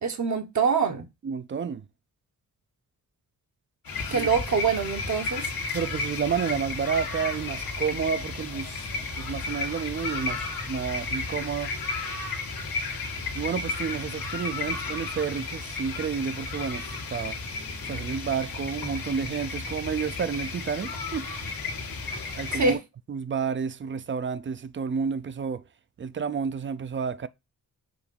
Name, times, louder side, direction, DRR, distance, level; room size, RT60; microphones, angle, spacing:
voice 1, 0.0-1.0 4.1-5.5 22.5-22.8, right 5 dB, 55° right, 1.0 m, -25 dB
voice 2, 1.2-1.8 4.1-4.3 5.7-8.9 9.2-11.7 13.3-17.4 17.9-21.3 22.4-22.8 23.1-25.6 26.0-27.3, right 6 dB, 35° right, 0.4 m, -30 dB
sound 1, 3.8-22.7, left 3 dB, 90° left, 1.6 m, -33 dB
5.0 x 3.8 x 5.2 m
wide cardioid pair, 135°, 34 cm